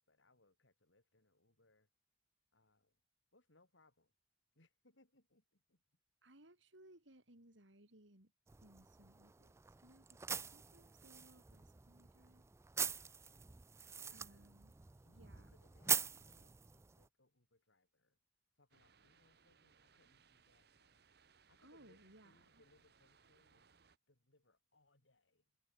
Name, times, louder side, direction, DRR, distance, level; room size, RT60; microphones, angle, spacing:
voice 1, 0.0-1.9 2.5-3.0 3.3-4.1 4.5-5.8 14.0-14.5 15.0-18.2 18.5-21.1 21.5-23.7 24.1-25.5, left 2 dB, 80° left, 4.7 m, -73 dB
voice 2, 6.2-8.3 8.6-12.4 14.1-14.7 15.1-15.5 21.6-22.6, right 1 dB, 75° right, 4.6 m, -64 dB
sound 1, 8.5-17.1, right 6 dB, 15° right, 0.3 m, -44 dB
sound 2, 18.7-24.0, right 5 dB, 55° right, 1.3 m, -70 dB
head